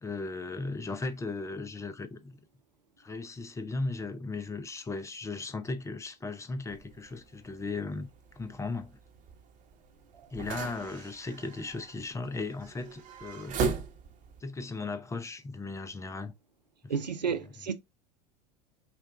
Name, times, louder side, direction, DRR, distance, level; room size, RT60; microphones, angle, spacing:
voice 1, 0.0-2.4 3.0-8.1 8.3-9.0 10.3-13.6 14.4-16.3 16.8-16.9, left 3 dB, 15° left, 0.6 m, -37 dB
sound 1, 6.7-14.4, right 5 dB, 40° right, 1.1 m, -39 dB
voice 2, 16.9-17.7, right 6 dB, 85° right, 0.6 m, -32 dB
5.8 x 2.3 x 3.5 m
figure-of-eight pair, 75°, 21 cm